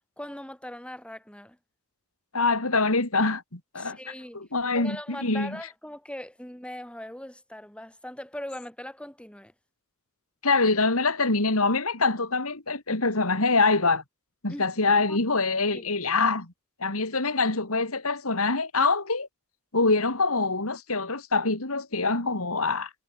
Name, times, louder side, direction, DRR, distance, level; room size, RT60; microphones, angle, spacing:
voice 1, 0.2-1.6 3.8-4.4 4.7-9.5 14.5-14.6 15.1-15.2 15.7-15.8, left 1 dB, 5° left, 5.4 m, -40 dB
voice 2, 2.3-4.0 4.3-5.6 10.4-14.0 14.4-16.5 16.8-19.3 19.7-22.9, left 3 dB, 75° left, 3.5 m, -25 dB
head